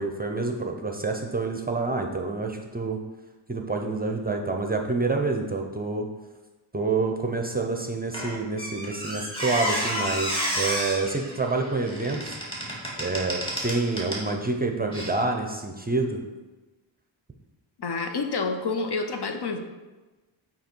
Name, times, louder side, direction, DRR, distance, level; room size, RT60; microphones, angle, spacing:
voice 1, 0.0-3.0 3.5-6.1 6.7-12.4 13.0-16.2, right 3 dB, 20° right, 3 dB, 0.6 m, -27 dB
Squeak, 8.1-14.3 14.9-15.1, equal, 10° left, 1.9 m, -31 dB
voice 2, 17.8-19.6, left 4 dB, 55° left, 5 dB, 0.7 m, -28 dB
7.7 x 2.9 x 4.4 m, 1.2 s
cardioid pair, 75°, 49 cm